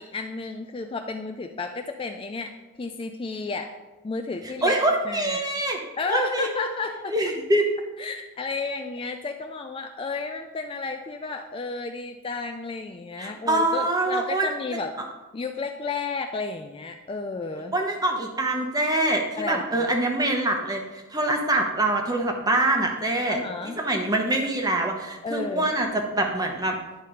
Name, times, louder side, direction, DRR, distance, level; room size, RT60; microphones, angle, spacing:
voice 1, 0.0-2.5 2.8-3.7 4.0-4.8 5.0-5.4 6.0-7.1 8.0-14.9 15.3-17.8 19.4-19.9 23.3-23.8 25.2-25.7, left 4 dB, 25° left, 5 dB, 0.3 m, -32 dB
voice 2, 4.6-5.8 6.1-6.7 7.1-7.7 13.2-14.5 17.7-20.8 21.1-26.7, right 1 dB, 15° right, 3 dB, 0.9 m, -24 dB
10.0 x 4.2 x 5.1 m, 1.2 s
head